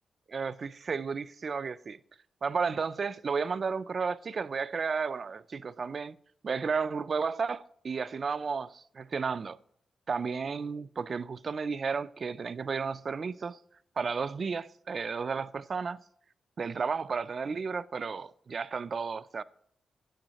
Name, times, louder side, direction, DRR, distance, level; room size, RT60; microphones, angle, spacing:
voice 1, 0.3-2.0 2.4-6.2 6.4-9.6 10.1-13.6 14.0-16.0 16.6-19.4, right 5 dB, 40° right, 0.4 m, -33 dB
9.9 x 8.9 x 2.9 m
wide cardioid pair, 160°, 0 cm